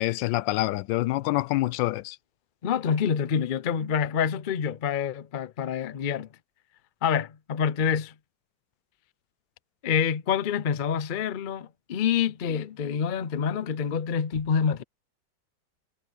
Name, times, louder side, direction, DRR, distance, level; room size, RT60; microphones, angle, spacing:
voice 1, 0.0-2.2, left 17 dB, 90° left, 1.3 m, -26 dB
voice 2, 2.6-6.3 7.0-8.1 9.8-14.8, left 7 dB, 70° left, 0.4 m, -27 dB
omnidirectional pair, 2.0 m